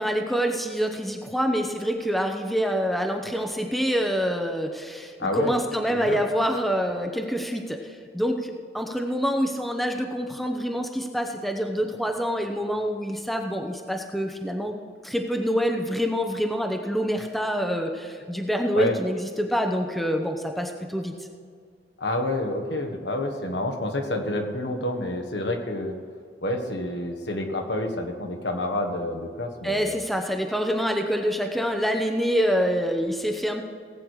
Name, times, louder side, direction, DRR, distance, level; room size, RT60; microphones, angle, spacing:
voice 1, 0.0-14.8 15.0-21.1 29.6-33.6, equal, ahead, 3 dB, 0.8 m, -26 dB
voice 2, 5.2-5.5 5.9-6.2 18.7-18.9 22.0-26.0 26.4-30.0, left 1 dB, 75° left, 3 dB, 1.6 m, -28 dB
18.0 x 8.5 x 4.8 m, 2.1 s
head